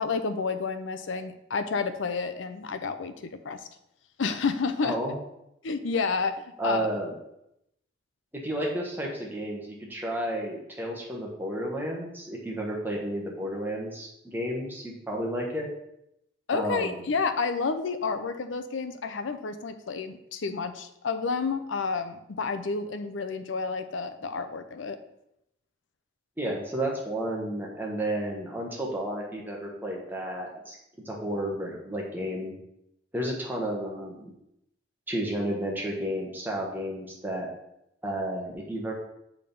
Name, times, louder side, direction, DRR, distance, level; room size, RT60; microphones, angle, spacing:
voice 1, 0.0-3.7 4.2-5.0 5.6-6.9 16.5-25.0, left 4 dB, 80° left, 10 dB, 0.6 m, -30 dB
voice 2, 4.8-5.1 6.6-7.1 8.3-15.7 16.5-17.0 26.4-30.8 31.0-32.5 33.1-34.3 35.1-37.5 38.0-38.9, right 1 dB, 10° right, -2 dB, 1.2 m, -32 dB
6.7 x 3.6 x 5.3 m, 0.82 s
head